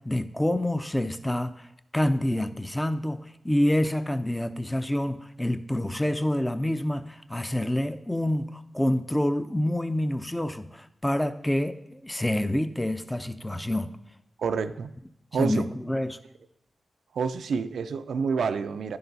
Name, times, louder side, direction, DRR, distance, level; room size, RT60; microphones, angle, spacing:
voice 1, 0.1-1.7 1.9-13.9 15.4-16.2, left 1 dB, 15° left, 11 dB, 0.6 m, -27 dB
voice 2, 14.4-14.9 15.3-15.7 17.1-19.0, right 5 dB, 85° right, 11 dB, 0.4 m, -28 dB
10.5 x 6.7 x 4.0 m, 0.79 s
cardioid pair, 45°, 0 cm